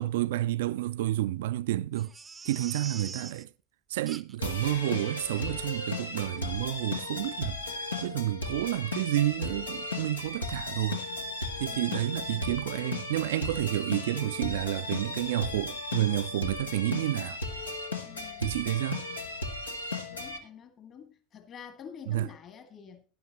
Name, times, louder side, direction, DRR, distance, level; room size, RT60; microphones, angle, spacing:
voice 1, 0.0-2.1 2.5-3.5 3.9-7.6 8.0-11.0 11.6-17.4 18.4-19.0 22.1-22.3, right 14 dB, 60° right, 0.4 m, -30 dB
Crying sobbing, 1.9-3.4 4.1-4.5 4.9-5.0 5.3-5.5 6.0-6.1 6.4-6.5, right 4 dB, 20° right, 0.6 m, -44 dB
sound 1, 4.4-20.4, left 2 dB, 80° left, 1.2 m, -36 dB
voice 2, 11.7-12.6 17.9-18.7 20.1-23.1, left 7 dB, 35° left, 2.0 m, -48 dB
12.0 x 11.0 x 3.0 m
figure-of-eight pair, 75°, 0 cm